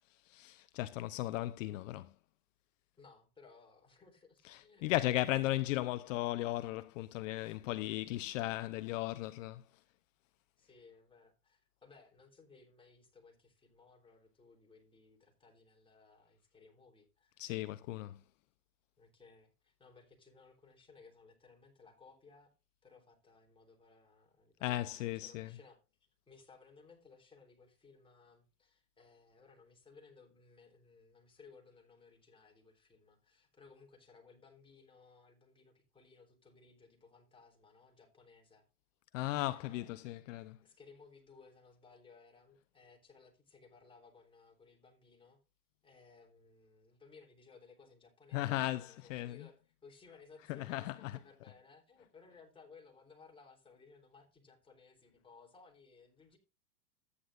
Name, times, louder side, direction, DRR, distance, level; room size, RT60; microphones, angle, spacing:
voice 1, 0.2-2.1 4.4-9.6 17.4-18.2 24.6-25.6 39.1-40.6 48.3-49.5 50.5-51.3, left 16 dB, 55° left, 0.7 m, -36 dB
voice 2, 2.9-5.7 10.6-17.5 19.0-22.5 22.8-25.8 26.3-38.7 39.5-40.0 40.6-45.4 45.8-56.4, left 4 dB, 10° left, 3.5 m, -61 dB
13.5 x 9.7 x 2.5 m
hypercardioid pair, 125°, 45 cm